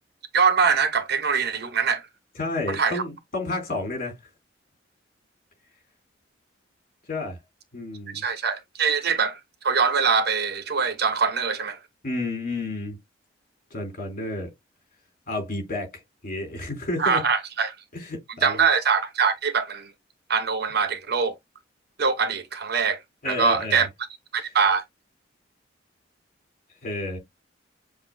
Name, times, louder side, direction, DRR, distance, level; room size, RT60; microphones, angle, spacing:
voice 1, 0.3-2.1 2.7-3.0 8.1-11.8 17.0-17.7 18.4-19.9 20.3-21.3 22.0-23.0 23.3-23.9 24.3-24.8, right 5 dB, 55° right, 0.9 m, -23 dB
voice 2, 2.4-4.2 7.1-7.4 7.7-8.2 12.0-13.0 13.7-14.5 15.3-17.2 17.9-18.7 23.2-23.8 26.8-27.2, left 2 dB, 45° left, 3.3 m, -31 dB
7.4 x 2.6 x 2.6 m
head